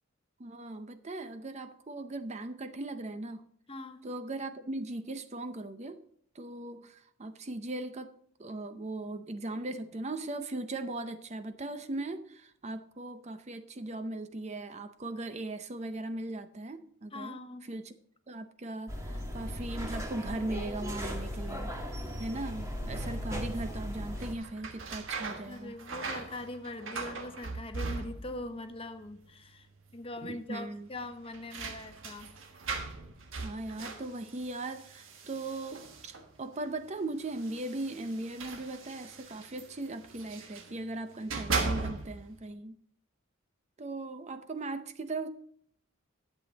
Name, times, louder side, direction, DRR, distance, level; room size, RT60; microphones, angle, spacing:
voice 1, 0.4-3.5 4.0-6.0 6.3-8.1 8.4-18.0 18.3-21.7 22.2-25.7 30.2-30.9 33.4-42.8 43.8-45.3, right 2 dB, 35° right, 0.6 m, -39 dB
voice 2, 3.7-4.0 17.1-17.7 25.5-32.3, left 2 dB, 30° left, 0.9 m, -42 dB
sound 1, 18.9-24.3, equal, 15° right, 1.5 m, -37 dB
sound 2, 24.1-28.5 28.8-29.5 29.8-29.9 30.9-36.4 37.2-40.7 41.1-42.3, right 4 dB, 70° right, 1.4 m, -39 dB
11.5 x 7.7 x 4.0 m
head